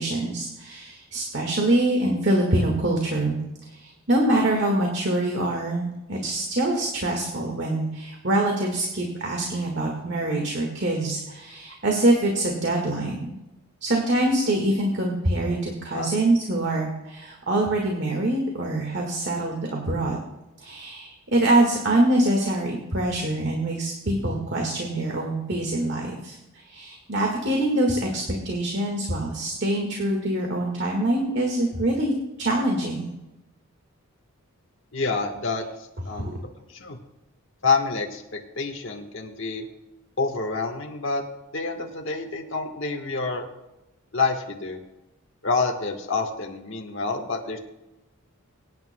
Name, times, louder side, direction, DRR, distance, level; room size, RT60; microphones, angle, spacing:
voice 1, 0.0-3.4 3.7-13.3 13.8-20.2 20.6-32.1 32.4-33.1 36.1-36.4, right 1 dB, 50° right, 0 dB, 1.7 m, -24 dB
voice 2, 34.9-35.6 36.0-36.3 36.8-37.0 37.6-39.6 40.2-41.2 41.5-43.5 44.1-44.8 45.4-47.6, left 4 dB, 60° left, 2 dB, 1.4 m, -27 dB
24.0 x 9.5 x 2.2 m, 0.96 s
head